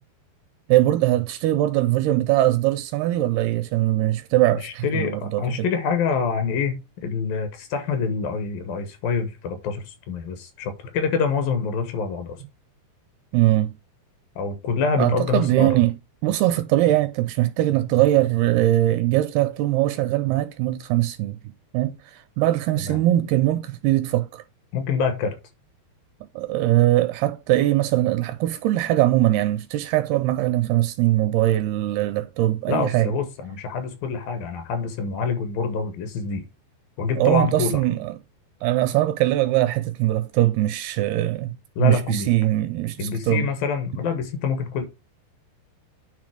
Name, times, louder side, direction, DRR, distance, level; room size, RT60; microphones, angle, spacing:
voice 1, 0.7-5.7 13.3-13.8 15.0-15.9 16.2-24.4 26.4-33.1 37.2-38.1 38.6-41.5 41.8-43.5, right 15 dB, 85° right, 2.3 m, -21 dB
voice 2, 4.5-12.4 14.4-15.7 22.8-23.0 24.7-25.4 32.7-36.5 37.0-37.8 41.8-42.3 43.0-44.8, left 5 dB, 70° left, 2.6 m, -26 dB
9.7 x 3.6 x 4.8 m
omnidirectional pair, 4.8 m